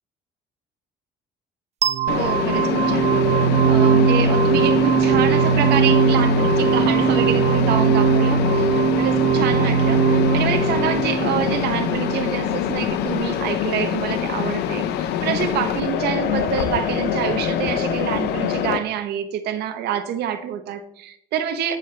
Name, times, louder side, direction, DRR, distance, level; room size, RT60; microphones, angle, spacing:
sound 1, 1.8-12.8, right 6 dB, 40° right, 0.6 m, -19 dB
Mechanisms, 2.1-18.8, left 9 dB, 80° left, 0.7 m, -24 dB
voice 1, 2.1-21.8, right 9 dB, 75° right, 7 dB, 1.0 m, -27 dB
11.5 x 7.6 x 3.3 m, 0.70 s
cardioid pair, 110°, 17 cm